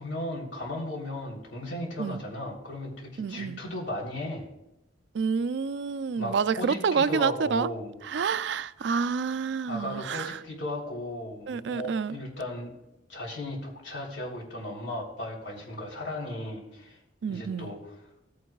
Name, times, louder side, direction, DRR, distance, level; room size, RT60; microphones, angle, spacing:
voice 1, 0.0-4.5 6.1-7.9 9.7-12.7 13.1-17.0 17.3-17.9, left 1 dB, 80° left, 3.4 m, -36 dB
voice 2, 3.2-3.6 5.1-7.7 8.0-10.4 11.5-12.2 17.2-17.7, right 5 dB, 70° right, 0.4 m, -28 dB
17.0 x 9.3 x 2.3 m
head